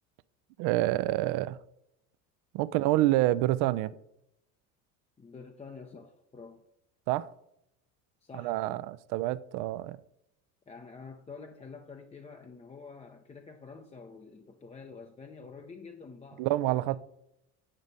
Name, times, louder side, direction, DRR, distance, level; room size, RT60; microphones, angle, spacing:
voice 1, 0.6-1.6 2.5-3.9 7.1-7.3 8.3-10.0 16.4-17.0, right 16 dB, 60° right, 0.5 m, -27 dB
voice 2, 5.2-6.6 8.2-8.9 10.7-17.0, left 4 dB, 15° left, 0.6 m, -48 dB
9.0 x 5.1 x 4.0 m
hypercardioid pair, 85°, 44 cm